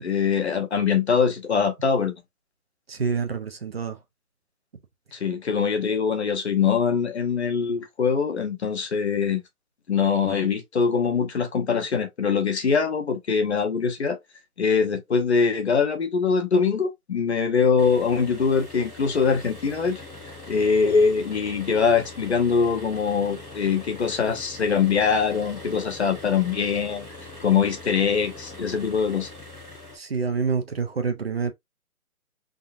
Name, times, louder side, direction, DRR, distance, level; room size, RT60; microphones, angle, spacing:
voice 1, 0.0-2.1 5.1-9.4 9.9-14.2 14.6-20.0 20.5-27.1 27.4-29.3, left 6 dB, 45° left, 1.0 m, -23 dB
voice 2, 2.9-4.0 29.9-31.5, right 5 dB, 40° right, 0.7 m, -27 dB
sound 1, 17.8-30.0, left 2 dB, ahead, 1.0 m, -42 dB
3.8 x 3.3 x 2.6 m
hypercardioid pair, 170°, 45 cm